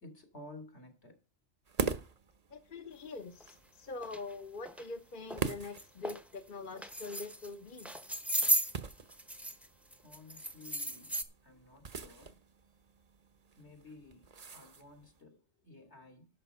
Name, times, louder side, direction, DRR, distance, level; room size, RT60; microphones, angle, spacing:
voice 1, 0.0-1.1 10.0-12.4 13.6-16.3, left 2 dB, 70° left, 3.1 m, -54 dB
sound 1, 1.7-15.2, right 5 dB, 35° right, 0.8 m, -44 dB
voice 2, 2.5-7.9, left 3 dB, 45° left, 1.1 m, -44 dB
sound 2, 3.4-3.5 4.0-4.2 4.7-4.8 5.3-5.5 5.8-6.2 6.8-7.5 7.8-9.7 9.9-11.2, right 1 dB, ahead, 0.8 m, -34 dB
11.0 x 6.6 x 5.5 m
omnidirectional pair, 1.2 m